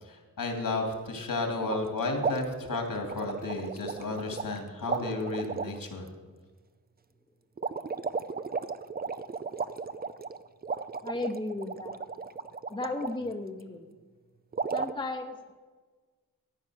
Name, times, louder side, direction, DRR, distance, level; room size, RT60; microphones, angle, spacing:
voice 1, 0.0-6.1, left 2 dB, 70° left, 3 dB, 2.8 m, -33 dB
sound 1, 1.7-1.9 2.2-4.6 4.8-5.8 7.6-13.2 14.5-14.9, right 5 dB, 25° right, 0.5 m, -35 dB
voice 2, 11.0-12.0 12.7-13.9 14.7-15.5, left 2 dB, 15° left, 4 dB, 0.8 m, -35 dB
14.5 x 9.5 x 6.4 m, 1.4 s
wide cardioid pair, 115°, 35 cm